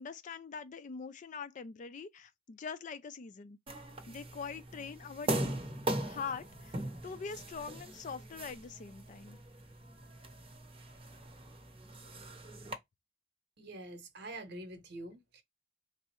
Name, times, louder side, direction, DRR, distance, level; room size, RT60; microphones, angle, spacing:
voice 1, 0.0-3.6 4.1-5.6 6.0-6.8 7.0-9.4, left 5 dB, 40° left, 0.3 m, -43 dB
sound 1, 3.7-12.7, right 1 dB, 30° right, 0.7 m, -40 dB
voice 2, 13.6-15.4, right 1 dB, 60° right, 0.8 m, -46 dB
3.5 x 2.0 x 4.2 m
head